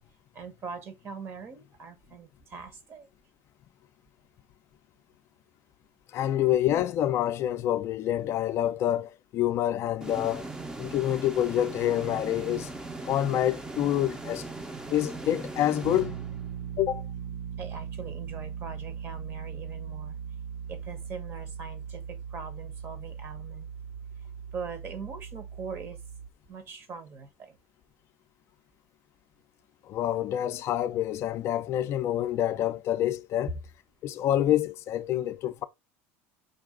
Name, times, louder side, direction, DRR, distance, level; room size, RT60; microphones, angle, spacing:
voice 1, 0.3-3.1 17.6-20.2 20.7-23.7 24.5-26.0 26.5-27.6, right 5 dB, 35° right, 1.0 m, -42 dB
voice 2, 6.1-10.4 10.8-12.7 13.1-14.5 14.9-16.1 16.8-17.1 29.9-33.6 34.0-35.6, left 12 dB, 45° left, 0.4 m, -27 dB
sound 1, 10.0-16.8, right 2 dB, 10° right, 0.5 m, -39 dB
sound 2, 15.8-26.3, right 7 dB, 75° right, 0.4 m, -39 dB
5.3 x 2.4 x 3.6 m
supercardioid pair, 125°, 7 cm